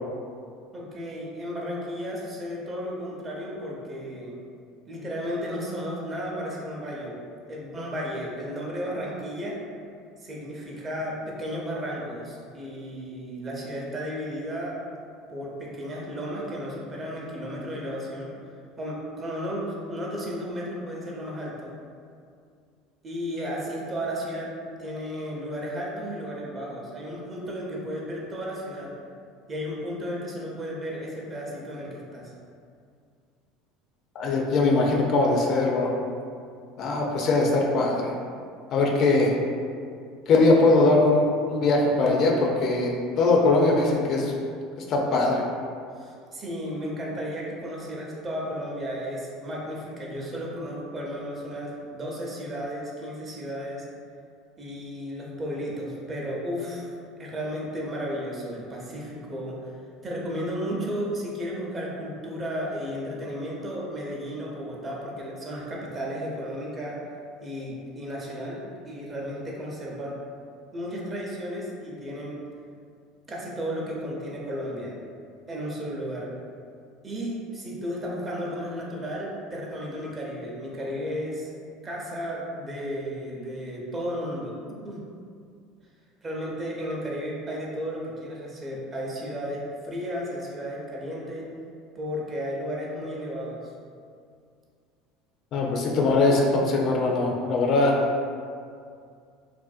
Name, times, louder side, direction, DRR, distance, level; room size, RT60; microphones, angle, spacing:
voice 1, 0.7-4.4 4.9-7.2 7.5-9.6 10.2-14.8 15.3-18.3 18.8-21.7 23.0-24.5 24.8-29.0 29.5-32.3 45.9-53.8 54.6-56.9 57.2-59.7 60.0-67.0 67.4-70.2 70.7-72.4 73.3-75.0 75.5-76.3 77.0-81.5 81.8-85.0 86.2-91.5 91.9-93.7, equal, 30° right, -3 dB, 0.6 m, -33 dB
voice 2, 34.2-35.9 36.8-38.1 38.7-39.3 40.3-44.3 44.9-45.4 95.5-97.9, left 2 dB, 55° left, -1 dB, 0.4 m, -21 dB
2.5 x 2.1 x 2.4 m, 2.3 s
hypercardioid pair, 85°, 0 cm